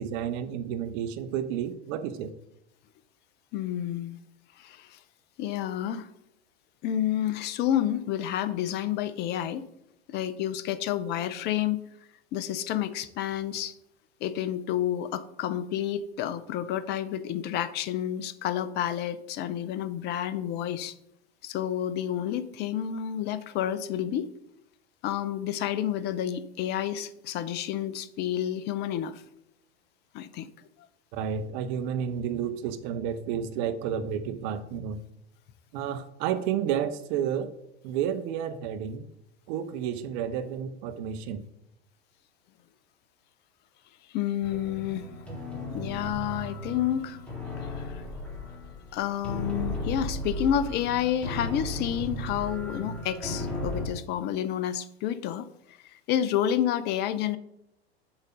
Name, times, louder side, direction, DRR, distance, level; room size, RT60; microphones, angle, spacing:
voice 1, 0.0-2.3 31.1-35.0 35.7-37.5 37.8-39.1 39.5-41.4, right 8 dB, 45° right, 10 dB, 0.8 m, -31 dB
voice 2, 3.5-4.2 4.6-5.0 5.4-6.1 6.8-9.6 10.1-11.9 12.3-13.7 14.2-20.9 21.4-24.3 25.0-29.2 30.1-30.5 44.1-45.1 45.7-47.2 47.6-48.0 48.9-55.5 55.8-57.4, left 10 dB, 30° left, 14 dB, 0.6 m, -30 dB
sound 1, 44.4-53.9, left 1 dB, 5° left, 1.8 m, -35 dB
7.2 x 3.7 x 5.4 m, 0.80 s
figure-of-eight pair, 90°, 32 cm